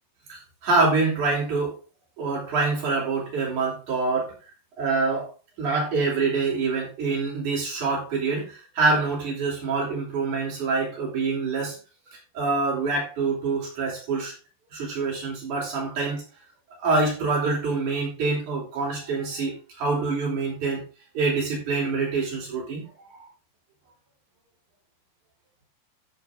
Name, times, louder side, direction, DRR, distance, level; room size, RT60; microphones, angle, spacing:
voice 1, 0.3-1.7 2.2-4.3 4.8-5.3 5.6-11.8 12.3-14.3 14.7-16.2 16.8-20.8 21.1-22.8, right 3 dB, 45° right, -3 dB, 5.0 m, -25 dB
12.0 x 5.5 x 3.9 m, 0.34 s
omnidirectional pair, 4.9 m